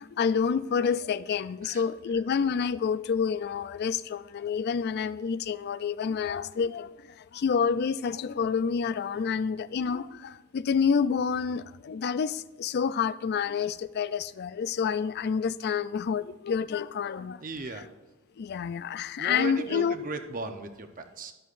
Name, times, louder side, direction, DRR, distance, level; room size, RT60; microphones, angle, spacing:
voice 1, 0.0-6.9 7.2-17.4 18.4-19.9, left 6 dB, 50° left, 0.3 m, -28 dB
voice 2, 17.4-17.8 19.2-21.3, right 2 dB, 40° right, 0.8 m, -36 dB
13.0 x 11.5 x 2.5 m
head